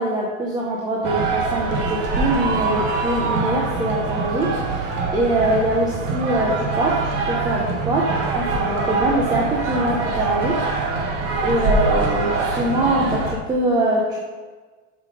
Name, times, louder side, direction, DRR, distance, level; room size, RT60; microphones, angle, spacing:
voice 1, 0.0-8.1 8.3-10.6 11.4-14.2, right 1 dB, 10° right, -4 dB, 0.6 m, -23 dB
sound 1, 1.0-13.3, right 3 dB, 45° right, 1.2 m, -24 dB
5.7 x 4.9 x 5.2 m, 1.4 s
supercardioid pair, 150°, 37 cm